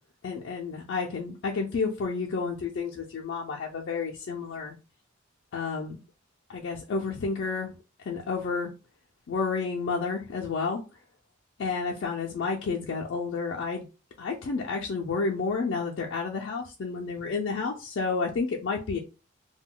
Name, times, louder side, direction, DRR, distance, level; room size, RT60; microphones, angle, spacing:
voice 1, 0.2-4.8 5.5-6.0 6.5-7.7 8.1-8.7 9.3-10.8 11.6-13.8 14.2-19.0, left 4 dB, 60° left, -1 dB, 0.4 m, -30 dB
2.2 x 2.1 x 3.7 m, 0.32 s
head